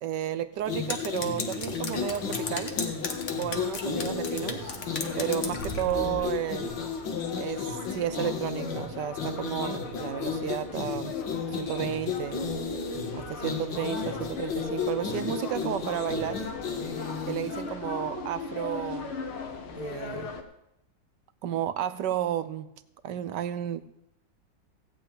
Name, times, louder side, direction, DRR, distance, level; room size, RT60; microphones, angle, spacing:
voice 1, 0.0-2.7 3.4-4.7 5.2-6.8 7.4-11.2 11.5-12.5 13.1-16.5 17.3-19.1 19.8-20.4 21.4-22.7 23.0-23.8, right 11 dB, 70° right, 13 dB, 1.1 m, -32 dB
sound 1, 0.6-17.7, left 5 dB, 65° left, 2.4 m, -34 dB
Drip, 0.7-5.9, left 4 dB, 40° left, 1.4 m, -37 dB
sound 2, 1.9-20.4, left 4 dB, 85° left, 2.1 m, -39 dB
15.5 x 5.5 x 9.1 m, 0.83 s
omnidirectional pair, 2.3 m